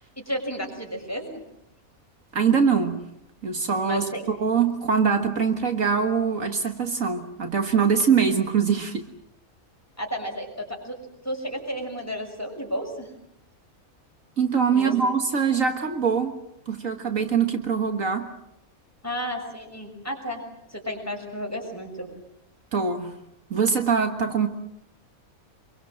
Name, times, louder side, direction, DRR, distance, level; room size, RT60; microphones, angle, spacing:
voice 1, 0.3-1.4 3.8-4.2 10.0-10.9 11.2-13.1 14.7-14.9 19.0-20.4 20.7-22.1, equal, 10° left, 1 dB, 6.4 m, -32 dB
voice 2, 2.3-3.0 3.4-9.1 14.4-16.3 16.7-18.3 22.7-23.2 23.5-24.5, right 6 dB, 65° right, 6 dB, 2.0 m, -23 dB
26.5 x 23.0 x 7.6 m, 0.79 s
omnidirectional pair, 1.5 m